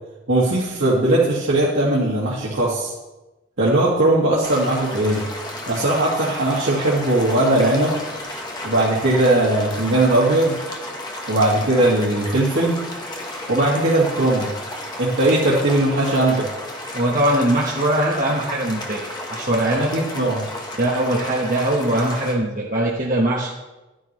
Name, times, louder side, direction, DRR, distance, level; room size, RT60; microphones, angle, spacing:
voice 1, 0.3-2.9 3.6-5.2 5.7-7.9 8.6-10.6 11.3-12.8 13.5-14.5 15.0-16.5 19.7-20.5, right 1 dB, 85° right, -8 dB, 2.1 m, -19 dB
sound 1, 4.4-22.3, left 1 dB, 20° left, 1.2 m, -33 dB
voice 2, 16.9-19.9 20.8-23.5, right 1 dB, 45° right, -4 dB, 1.2 m, -21 dB
12.0 x 9.8 x 3.2 m, 1.1 s
head